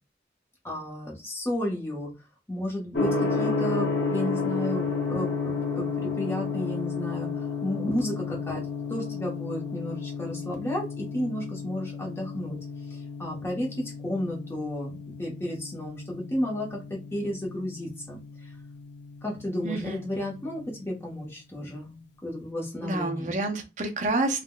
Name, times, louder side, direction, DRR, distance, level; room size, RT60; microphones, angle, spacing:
voice 1, 0.6-2.1 2.5-12.6 12.9-18.5 19.2-22.0 22.2-23.4, left 1 dB, 15° left, -2 dB, 0.8 m, -33 dB
Gong, 2.9-20.8, left 4 dB, 90° left, 0.8 m, -32 dB
voice 2, 19.6-20.0 22.8-24.4, right 2 dB, 40° right, 4 dB, 0.5 m, -28 dB
3.5 x 2.1 x 2.2 m, 0.28 s
head